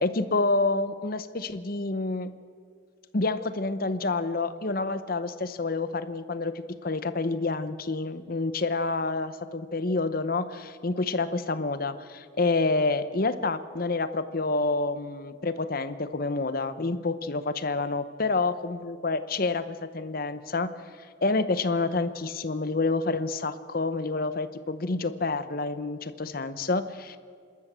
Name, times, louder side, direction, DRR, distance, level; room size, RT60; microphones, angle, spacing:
voice 1, 0.0-2.3 3.1-19.6 19.9-20.7 21.2-27.2, left 3 dB, 45° left, 12 dB, 0.8 m, -28 dB
27.5 x 13.0 x 7.5 m, 2.1 s
head